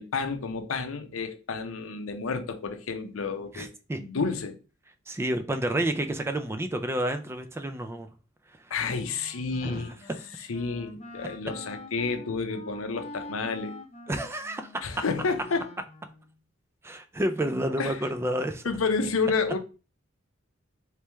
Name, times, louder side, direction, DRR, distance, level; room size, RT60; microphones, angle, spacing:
voice 1, 0.0-3.7 4.0-4.5 8.7-9.9 10.5-13.8 14.8-15.7 17.8-18.0 18.6-19.6, left 4 dB, 80° left, 0.6 m, -30 dB
voice 2, 3.5-4.0 5.1-8.1 9.6-9.8 14.1-14.7 16.8-18.6, right 1 dB, 10° right, 0.3 m, -29 dB
Wind instrument woodwind instrument, 9.0-16.3, left 1 dB, 35° left, 0.7 m, -46 dB
3.3 x 3.1 x 3.3 m
head